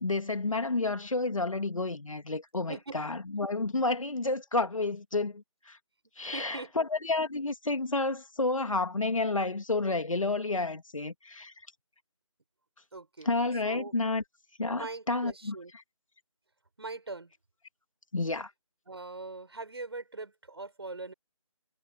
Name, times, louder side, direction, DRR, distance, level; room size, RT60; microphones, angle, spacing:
voice 1, 0.0-5.8 6.2-11.5 13.3-14.2 14.6-15.5 18.1-18.5, left 3 dB, 70° left, 2.3 m, -30 dB
voice 2, 2.7-3.0 6.2-6.9 12.9-13.3 13.6-13.9 14.7-15.7 16.8-17.3 18.9-21.1, right 3 dB, 45° right, 6.6 m, -41 dB
figure-of-eight pair, 175°, 18 cm